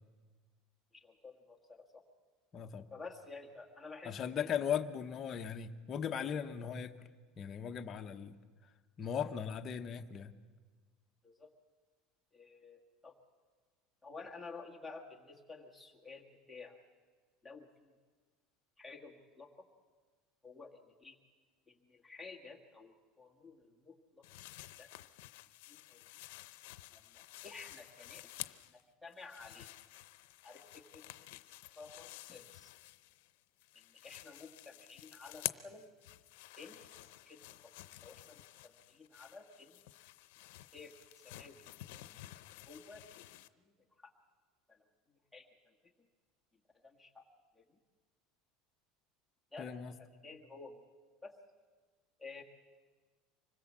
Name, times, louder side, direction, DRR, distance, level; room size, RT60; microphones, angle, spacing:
voice 1, 0.9-2.0 2.9-4.5 9.0-9.1 11.2-11.5 12.3-13.1 14.0-16.8 17.4-17.9 18.8-19.5 20.4-21.2 21.7-24.2 24.8-24.9 25.7-26.0 26.9-28.2 28.7-29.7 30.4-31.0 31.8-32.7 33.7-35.9 36.6-36.9 37.2-37.7 38.0-39.9 40.7-40.9 41.2-42.2 42.6-43.0 43.6-43.7 44.0-44.1 44.7-45.7 46.8-47.2 47.5-47.8 49.5-49.7 50.2-50.8 51.2-51.3 52.2-52.4, left 4 dB, 5° left, -1 dB, 1.7 m, -52 dB
voice 2, 2.5-2.8 4.0-6.9 7.4-8.4 9.0-10.3 49.6-49.9, left 8 dB, 25° left, 6 dB, 1.0 m, -38 dB
sound 1, 24.2-28.8 29.1-33.3 33.6-43.5, left 18 dB, 80° left, 0.7 m, -50 dB
25.5 x 20.5 x 7.5 m, 1.4 s
cardioid pair, 170°, 0 cm